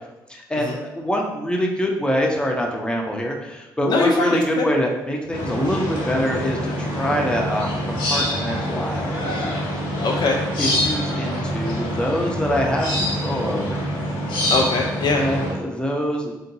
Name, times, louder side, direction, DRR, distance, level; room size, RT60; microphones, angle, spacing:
voice 1, 0.3-9.5 10.6-13.9 15.2-16.3, equal, 10° left, 0 dB, 0.7 m, -25 dB
voice 2, 3.9-4.7 10.0-10.4 14.5-15.2, left 3 dB, 45° left, 1 dB, 0.4 m, -22 dB
sound 1, 5.3-15.5, equal, 65° left, 0.8 m, -25 dB
3.6 x 2.6 x 2.7 m, 1.0 s
figure-of-eight pair, 45°, 10 cm